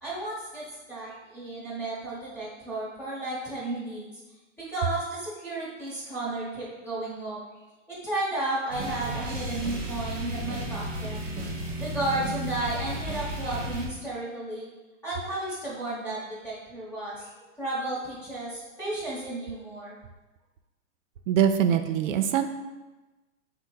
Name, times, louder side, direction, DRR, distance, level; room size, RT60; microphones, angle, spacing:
voice 1, 0.0-4.0 4.6-7.4 7.9-11.4 11.8-14.7 15.0-20.0, right 2 dB, 5° left, -9 dB, 0.9 m, -33 dB
sound 1, 8.7-13.9, right 1 dB, 20° right, 0.6 m, -33 dB
voice 2, 21.3-22.5, right 9 dB, 90° right, 8 dB, 0.5 m, -23 dB
4.3 x 2.1 x 4.6 m, 1.1 s
supercardioid pair, 165°, 38 cm